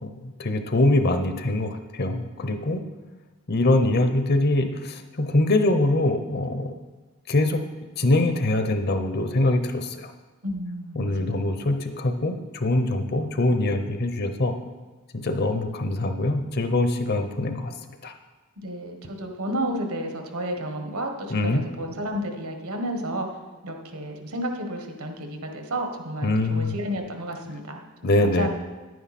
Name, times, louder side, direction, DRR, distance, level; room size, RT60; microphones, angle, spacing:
voice 1, 0.0-2.8 3.5-6.7 7.3-7.7 8.0-10.1 11.0-14.5 15.1-17.7 18.0-18.1 21.3-21.6 26.2-26.7 28.0-28.5, left 2 dB, 50° left, 8 dB, 0.8 m, -23 dB
voice 2, 10.4-11.6 18.6-23.3 23.6-28.5, right 1 dB, 75° right, 4 dB, 1.4 m, -32 dB
10.0 x 9.3 x 4.2 m, 1.2 s
head